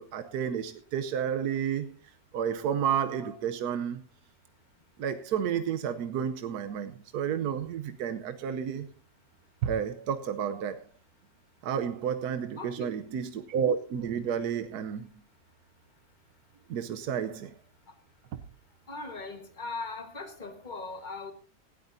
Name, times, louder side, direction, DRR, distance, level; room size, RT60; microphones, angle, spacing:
voice 1, 0.0-1.9 2.3-4.0 5.0-8.9 9.6-10.8 11.6-15.1 16.7-17.5, right 8 dB, 80° right, 1.3 m, -31 dB
voice 2, 12.6-12.9 18.9-21.3, left 3 dB, 30° left, 1.6 m, -39 dB
18.0 x 13.0 x 2.7 m
omnidirectional pair, 1.6 m